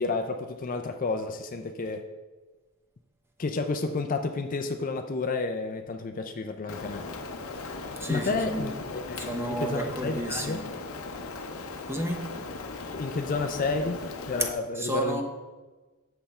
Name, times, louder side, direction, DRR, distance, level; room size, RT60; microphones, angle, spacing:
voice 1, 0.0-2.0 3.4-7.1 8.1-10.6 12.9-15.2, left 3 dB, 40° left, 6 dB, 0.4 m, -31 dB
Rain, 6.7-14.5, left 3 dB, 70° left, 0.7 m, -38 dB
voice 2, 8.0-8.7 9.2-10.6 11.9-12.2 14.4-14.5 14.7-15.2, right 1 dB, 10° right, 3 dB, 0.8 m, -31 dB
7.8 x 6.8 x 4.3 m, 1.2 s
head